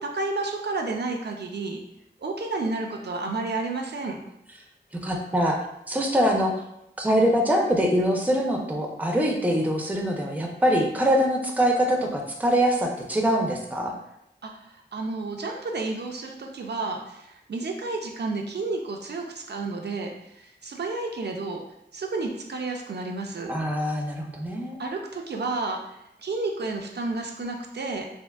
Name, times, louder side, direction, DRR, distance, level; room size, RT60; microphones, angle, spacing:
voice 1, 0.0-1.8 2.2-4.2 14.4-21.6 21.9-23.6 24.8-28.1, right 3 dB, 65° right, 2 dB, 0.4 m, -31 dB
voice 2, 5.0-5.6 5.9-6.6 7.0-13.9 23.5-24.8, equal, 10° right, 1 dB, 0.5 m, -23 dB
3.5 x 2.5 x 2.3 m, 0.81 s
wide cardioid pair, 65°, 19 cm